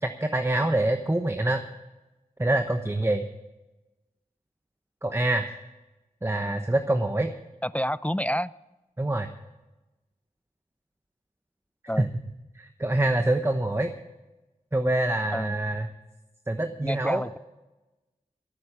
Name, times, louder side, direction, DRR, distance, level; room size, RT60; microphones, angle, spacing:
voice 1, 0.0-1.6 2.4-3.3 5.0-5.5 6.2-7.3 9.0-9.3 12.0-12.1 12.5-13.9 14.7-15.9 16.5-17.2, right 1 dB, 15° right, 7 dB, 0.9 m, -25 dB
voice 2, 7.6-8.5 11.9-12.1 15.3-15.5 16.8-17.4, equal, 10° left, 18 dB, 0.4 m, -28 dB
14.5 x 8.6 x 7.0 m, 1.1 s
wide cardioid pair, 40°, 15 cm